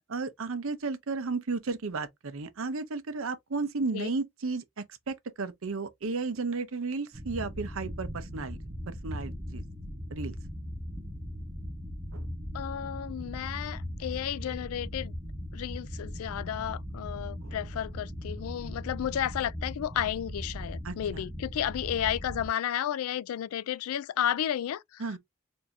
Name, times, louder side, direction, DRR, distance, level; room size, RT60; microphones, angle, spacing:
voice 1, 0.1-8.6 8.9-9.6 10.1-10.3 12.1-12.3 17.4-17.6 20.8-21.3 25.0-25.2, right 4 dB, 75° right, 0.7 m, -34 dB
sound 1, 7.1-22.5, equal, 25° right, 1.0 m, -39 dB
voice 2, 12.5-15.1 15.5-25.0, left 10 dB, 85° left, 0.3 m, -32 dB
4.4 x 2.7 x 2.6 m
head